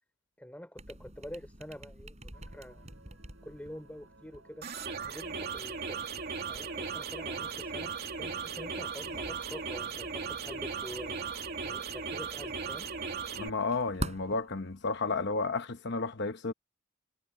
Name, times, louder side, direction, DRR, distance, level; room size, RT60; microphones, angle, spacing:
voice 1, 0.4-2.9 3.4-4.7 5.1-6.0 6.5-11.2 11.6-12.9, equal, 5° left, 5.0 m, -46 dB
sound 1, 0.8-15.5, right 1 dB, 35° right, 5.4 m, -48 dB
sound 2, 2.3-13.6, right 3 dB, 75° right, 6.8 m, -59 dB
sound 3, 4.6-13.5, right 5 dB, 50° right, 2.6 m, -37 dB
voice 2, 13.4-16.5, left 3 dB, 60° left, 1.0 m, -32 dB
head